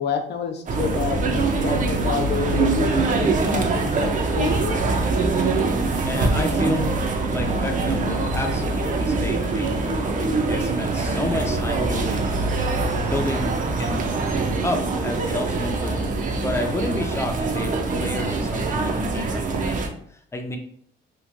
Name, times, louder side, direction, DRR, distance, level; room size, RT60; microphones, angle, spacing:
voice 1, 0.0-4.8, left 7 dB, 60° left, 5 dB, 0.6 m, -29 dB
sound 1, 0.7-19.9, right 3 dB, 40° right, 0.5 m, -23 dB
voice 2, 6.0-6.9 7.3-12.4 13.1-14.0 14.6-20.0 20.3-20.6, left 2 dB, 15° left, 4 dB, 0.5 m, -30 dB
3.0 x 2.4 x 2.4 m, 0.64 s
cardioid pair, 90°, 20 cm